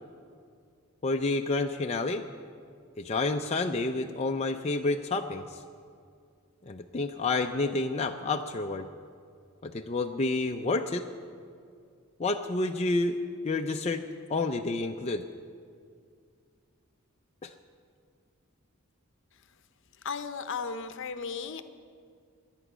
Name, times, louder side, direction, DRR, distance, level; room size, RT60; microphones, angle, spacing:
voice 1, 1.0-2.2 3.0-5.6 6.7-8.9 9.6-11.1 12.2-13.2 13.4-14.0 14.3-15.2 17.4-17.5, left 3 dB, 30° left, 4 dB, 0.5 m, -29 dB
voice 2, 20.0-21.6, left 5 dB, 55° left, 10 dB, 0.8 m, -35 dB
22.5 x 9.1 x 6.1 m, 2.2 s
head